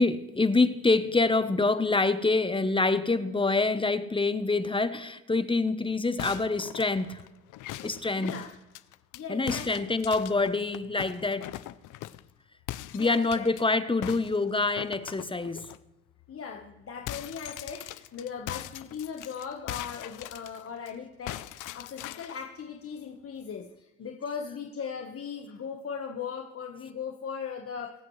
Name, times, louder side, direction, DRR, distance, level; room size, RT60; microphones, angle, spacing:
voice 1, 0.0-7.2 7.8-8.4 9.3-11.5 12.9-15.7, left 3 dB, 15° left, 12 dB, 0.8 m, -26 dB
sound 1, 6.2-9.2 9.5-12.3 12.7-13.6 14.0-15.8 16.2-16.3 16.6-20.9 21.3-22.4, left 15 dB, 85° left, 0.6 m, -41 dB
voice 2, 8.2-8.5 9.1-9.9 12.9-13.5 16.3-27.9, left 6 dB, 50° left, 2 dB, 1.3 m, -38 dB
24.0 x 8.5 x 3.2 m, 1.0 s
cardioid pair, 90°, 30 cm